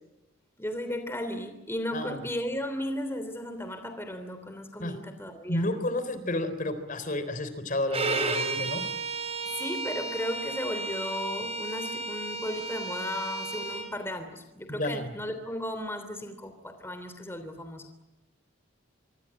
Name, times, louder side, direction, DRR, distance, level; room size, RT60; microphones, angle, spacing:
voice 1, 0.6-5.7 9.5-18.0, left 1 dB, 10° left, 8 dB, 3.1 m, -35 dB
voice 2, 5.5-8.8 14.7-15.1, left 1 dB, 40° left, 12 dB, 3.8 m, -31 dB
Bowed string instrument, 7.9-13.9, right 3 dB, 30° right, 5.0 m, -33 dB
25.5 x 25.5 x 8.9 m, 0.96 s
head